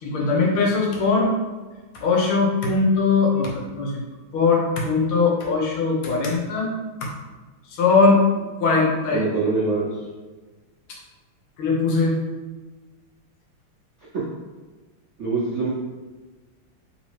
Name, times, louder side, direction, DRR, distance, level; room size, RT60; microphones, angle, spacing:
voice 1, 0.0-1.3 2.0-4.0 4.3-6.7 7.0-7.1 7.8-8.2 8.6-9.2 11.6-12.2, left 4 dB, 90° left, -2 dB, 1.9 m, -20 dB
voice 2, 9.1-9.9 14.1-14.3 15.2-15.7, right 3 dB, 70° right, -6 dB, 0.6 m, -24 dB
3.8 x 2.9 x 4.6 m, 1.3 s
omnidirectional pair, 2.3 m